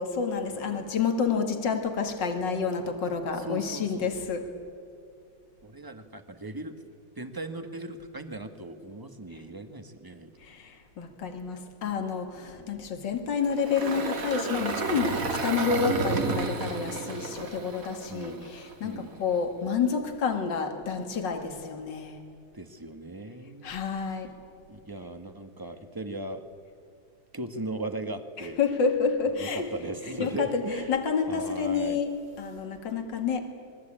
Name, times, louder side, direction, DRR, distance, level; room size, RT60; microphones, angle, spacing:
voice 1, 0.0-4.5 10.4-22.2 23.6-24.3 28.4-29.7 30.1-32.1 32.4-33.4, left 6 dB, 65° left, 5 dB, 2.7 m, -29 dB
voice 2, 0.5-0.9 3.3-4.3 5.6-6.8 7.1-10.3 12.5-12.8 18.1-18.5 18.8-19.2 22.5-24.2 24.7-26.4 27.3-28.6 29.4-30.9 31.3-32.0, right 2 dB, 10° right, 8 dB, 1.3 m, -38 dB
Engine, 13.4-18.7, right 4 dB, 45° right, 2.1 m, -31 dB
27.5 x 21.0 x 8.8 m, 2.3 s
omnidirectional pair, 2.1 m